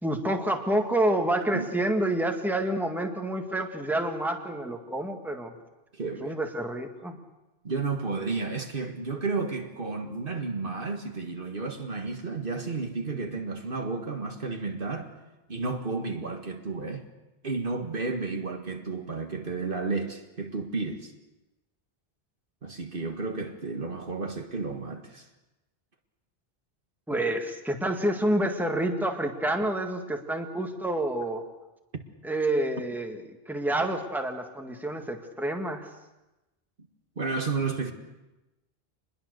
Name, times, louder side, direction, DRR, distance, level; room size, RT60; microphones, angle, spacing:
voice 1, 0.0-5.5 6.2-7.2 27.1-31.4 32.2-35.9, right 1 dB, ahead, 1.9 m, -28 dB
voice 2, 5.9-6.4 7.6-15.1 15.5-17.1 17.4-21.1 22.6-25.3 37.2-37.9, right 4 dB, 55° right, 1.9 m, -32 dB
26.0 x 21.0 x 6.7 m
omnidirectional pair, 1.1 m